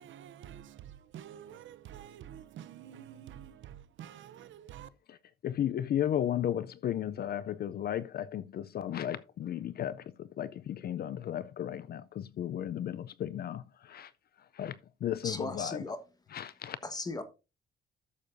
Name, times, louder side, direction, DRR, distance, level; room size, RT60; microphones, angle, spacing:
voice 1, 0.0-4.9, right 10 dB, 65° right, 0.7 m, -48 dB
voice 2, 5.4-14.1 14.5-14.8 15.0-15.8 16.3-16.8, left 10 dB, 50° left, 0.4 m, -34 dB
voice 3, 15.2-16.0 16.8-17.2, left 2 dB, 20° left, 1.3 m, -37 dB
13.5 x 6.6 x 2.6 m
cardioid pair, 135°, 21 cm